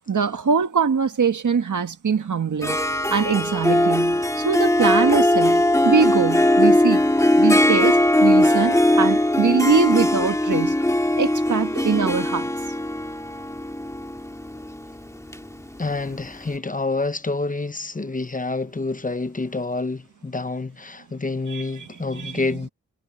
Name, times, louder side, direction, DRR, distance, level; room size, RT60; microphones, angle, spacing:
voice 1, 0.1-2.8 3.1-10.8 11.2-12.5 21.5-22.5, right 5 dB, 80° right, 1.8 m, -23 dB
Harp, 2.6-16.2, left 1 dB, 10° left, 1.9 m, -20 dB
voice 2, 15.8-22.7, left 3 dB, 25° left, 0.9 m, -28 dB
wide cardioid pair, 65°, 30 cm